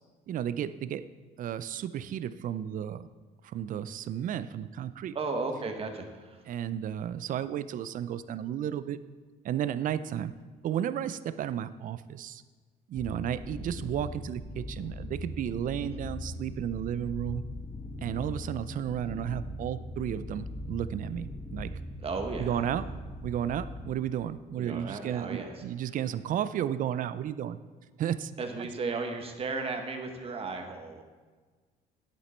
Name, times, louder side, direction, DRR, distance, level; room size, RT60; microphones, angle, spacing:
voice 1, 0.3-1.1 1.4-3.1 3.4-5.1 6.5-9.0 9.4-10.3 10.6-12.4 12.9-17.4 18.0-21.8 22.4-22.8 23.2-27.6 28.0-28.3, right 10 dB, 50° right, 14 dB, 0.5 m, -33 dB
voice 2, 5.1-6.4 15.8-16.0 22.0-22.7 24.6-25.6 28.4-31.0, right 3 dB, 35° right, 4 dB, 1.4 m, -35 dB
sound 1, 12.9-23.9, left 1 dB, 5° left, 1.2 m, -40 dB
10.0 x 8.4 x 4.4 m, 1.4 s
cardioid pair, 110°, 17 cm